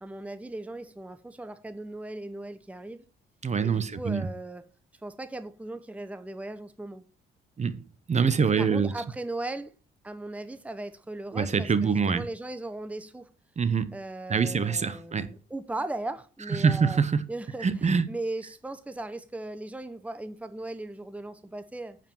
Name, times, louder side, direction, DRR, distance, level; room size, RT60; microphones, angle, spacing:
voice 1, 0.0-3.0 3.6-4.6 5.0-7.0 8.4-9.7 10.0-13.3 13.9-17.0 17.3-22.0, right 2 dB, 5° right, 0.9 m, -38 dB
voice 2, 3.4-4.3 7.6-8.9 11.3-12.2 13.6-13.9 14.3-15.3 16.5-17.2 17.6-18.1, right 5 dB, 35° right, 1.1 m, -25 dB
9.1 x 5.2 x 7.2 m
cardioid pair, 90°, 20 cm